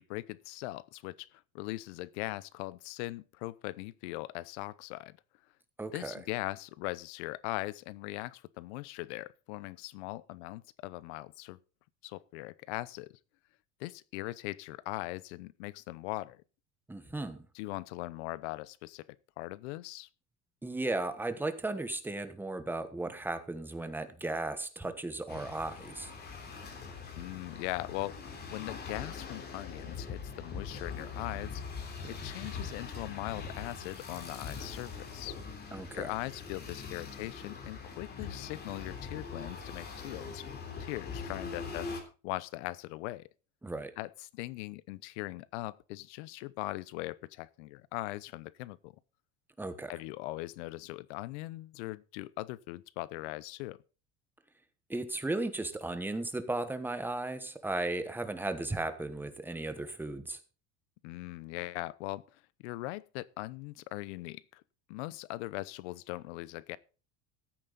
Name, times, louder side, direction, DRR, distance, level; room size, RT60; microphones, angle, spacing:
voice 1, 0.0-5.2 5.9-11.6 12.0-13.1 13.8-16.4 17.5-20.1 27.2-35.4 35.9-40.5 40.8-43.3 44.0-48.9 49.9-53.8 61.0-64.6 64.9-66.8, left 19 dB, 85° left, 0.8 m, -40 dB
voice 2, 5.8-6.2 16.9-17.5 20.6-26.1 35.7-36.1 43.6-43.9 49.6-49.9 54.9-60.4, right 2 dB, 5° right, 1.2 m, -35 dB
sound 1, 25.3-42.0, left 5 dB, 30° left, 3.1 m, -42 dB
15.0 x 9.0 x 4.0 m
cardioid pair, 150°, 33 cm